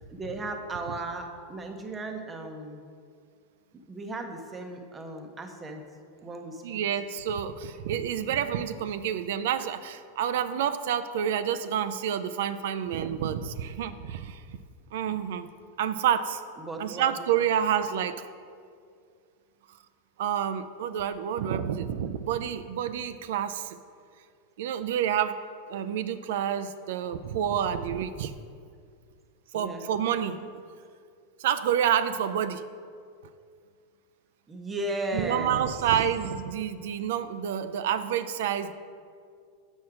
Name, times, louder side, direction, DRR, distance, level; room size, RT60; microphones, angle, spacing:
voice 1, 0.1-2.9 3.7-5.8 6.2-6.8 16.6-17.2 29.5-29.9 34.5-35.6, right 2 dB, 15° right, 4 dB, 0.7 m, -36 dB
voice 2, 6.6-14.4 14.9-15.5 15.8-16.4 16.8-18.3 20.2-23.8 24.6-25.4 25.7-28.3 29.5-30.6 31.4-32.6 35.1-38.7, right 9 dB, 75° right, 11 dB, 0.4 m, -28 dB
7.3 x 4.4 x 4.9 m, 2.2 s
supercardioid pair, 130°, 0 cm